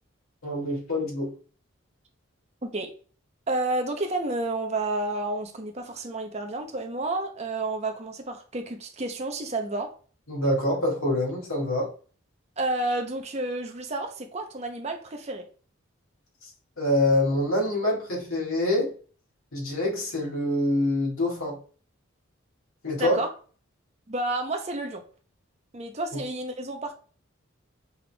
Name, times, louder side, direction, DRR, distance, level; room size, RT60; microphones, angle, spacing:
voice 1, 0.4-1.3 10.3-11.9 16.8-18.9 19.5-21.6 22.8-23.2, left 1 dB, 85° left, 1.7 m, -25 dB
voice 2, 2.6-2.9 3.5-9.9 12.6-15.5 23.0-23.3 24.1-25.0 25.7-26.9, right 2 dB, 30° right, 0.6 m, -30 dB
5.5 x 3.4 x 2.2 m
head